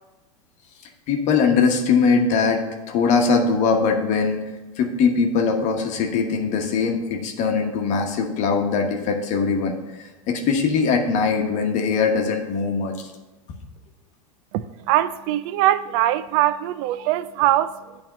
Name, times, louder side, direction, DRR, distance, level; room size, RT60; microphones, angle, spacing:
voice 1, 1.1-4.4 4.8-13.1, left 5 dB, 45° left, 1.2 m, -21 dB
voice 2, 14.5-18.0, right 13 dB, 50° right, 0.4 m, -22 dB
8.6 x 3.5 x 6.7 m
hypercardioid pair, 110°, 17 cm